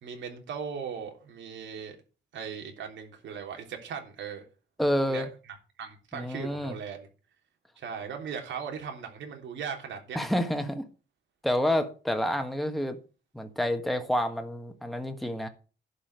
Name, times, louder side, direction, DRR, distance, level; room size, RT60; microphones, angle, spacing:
voice 1, 0.0-2.0 2.3-4.4 5.0-5.3 5.8-7.1 7.8-10.2, right 7 dB, 85° right, 3.3 m, -38 dB
voice 2, 4.8-5.3 6.1-6.7 10.1-10.8 11.4-13.0 13.3-15.5, left 1 dB, ahead, 1.5 m, -28 dB
11.5 x 5.7 x 8.1 m
cardioid pair, 135°, 19 cm